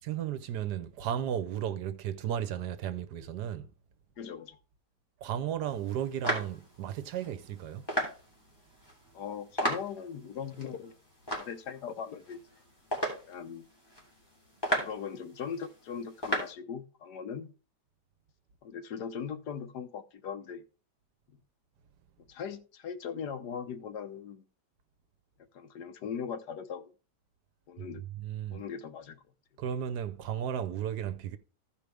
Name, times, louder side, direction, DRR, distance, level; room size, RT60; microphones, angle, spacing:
voice 1, 0.1-3.7 5.2-7.9 28.2-28.6 29.6-31.4, right 9 dB, 75° right, 1.3 m, -34 dB
voice 2, 4.2-4.6 9.1-10.9 11.3-12.4 13.3-13.6 14.7-17.5 18.6-20.6 22.3-24.4 25.5-26.9 27.7-28.1 28.5-29.2, left 7 dB, 75° left, 1.4 m, -39 dB
sound 1, 5.7-16.5, equal, 15° left, 3.1 m, -37 dB
15.5 x 5.2 x 3.4 m
omnidirectional pair, 1.8 m